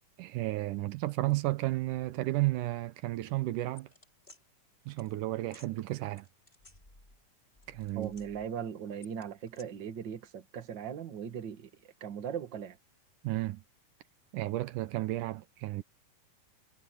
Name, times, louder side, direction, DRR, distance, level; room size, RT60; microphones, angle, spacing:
voice 1, 0.2-3.9 4.9-6.3 7.7-8.1 13.2-13.6 14.3-15.8, right 17 dB, 80° right, 2.3 m, -32 dB
sound 1, 3.8-4.4 5.0-5.1 5.4-5.7 6.2-7.3 7.5-8.5 9.0-9.6, left 2 dB, 15° left, 4.8 m, -57 dB
voice 2, 8.0-12.8, right 8 dB, 40° right, 2.0 m, -39 dB
omnidirectional pair, 3.7 m